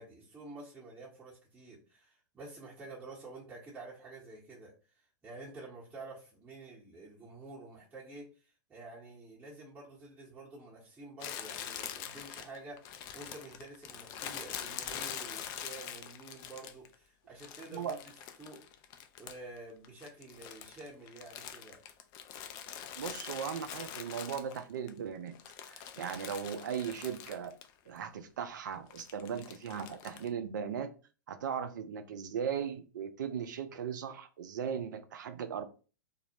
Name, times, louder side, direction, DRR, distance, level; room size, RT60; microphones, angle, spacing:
voice 1, 0.0-4.7 5.2-18.0 18.4-18.6 19.2-21.8, right 2 dB, 15° right, -5 dB, 0.8 m, -49 dB
Crumpling crinkling, 11.2-16.9 17.4-19.6 19.8-24.9 25.3-27.7 28.0-28.1 28.9-30.3, left 9 dB, 40° left, 0.3 m, -44 dB
voice 2, 23.0-25.4 25.6-27.5 27.9-30.9 31.3-35.7, right 7 dB, 70° right, 10 dB, 0.4 m, -38 dB
2.3 x 2.0 x 2.8 m, 0.35 s
hypercardioid pair, 100°, 11 cm